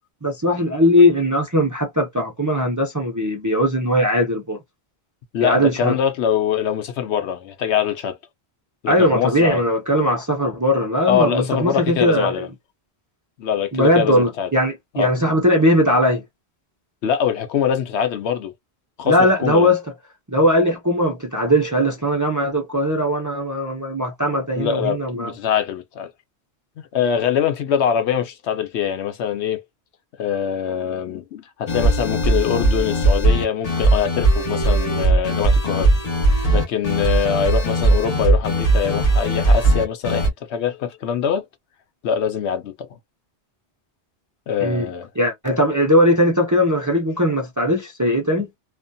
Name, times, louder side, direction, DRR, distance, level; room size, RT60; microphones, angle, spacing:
voice 1, 0.2-4.6 5.4-6.0 8.9-12.4 13.7-16.2 19.0-19.8 20.3-25.3 44.6-44.9 45.2-48.5, equal, 30° right, 0.4 m, -19 dB
voice 2, 5.3-8.2 8.8-9.6 11.1-12.5 13.4-14.5 14.9-15.1 17.0-18.5 19.0-19.7 24.5-26.1 26.9-29.6 30.2-35.9 36.5-41.4 42.0-43.0 44.5-45.1, left 8 dB, 85° left, 0.9 m, -23 dB
sound 1, 31.7-40.3, right 2 dB, 40° left, 0.9 m, -18 dB
2.6 x 2.4 x 2.2 m
omnidirectional pair, 1.1 m